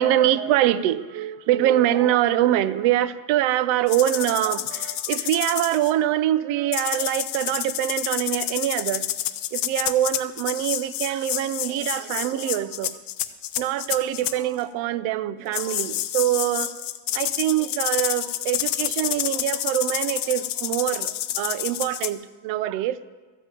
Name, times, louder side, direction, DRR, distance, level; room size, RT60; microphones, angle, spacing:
voice 1, 0.0-9.1 9.5-13.0 13.6-16.7 17.1-23.0, right 12 dB, 85° right, 15 dB, 0.7 m, -24 dB
sound 1, 3.9-5.9 6.7-14.3 15.5-22.1, left 13 dB, 50° left, 0.6 m, -29 dB
13.5 x 5.5 x 9.1 m, 1.3 s
cardioid pair, 170°, 45 cm